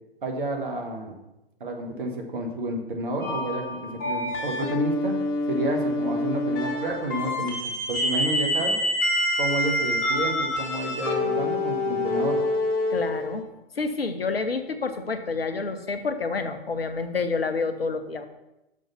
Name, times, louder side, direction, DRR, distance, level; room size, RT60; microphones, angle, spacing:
voice 1, 0.2-1.2 1.6-5.2 5.5-8.8 9.4-12.4, right 2 dB, 60° right, 2 dB, 1.6 m, -30 dB
sound 1, 3.2-13.4, left 1 dB, 35° left, 2.0 m, -27 dB
voice 2, 12.9-13.4 13.8-18.3, left 4 dB, 75° left, 8 dB, 0.9 m, -28 dB
6.3 x 5.3 x 5.8 m, 0.93 s
figure-of-eight pair, 110°, 30 cm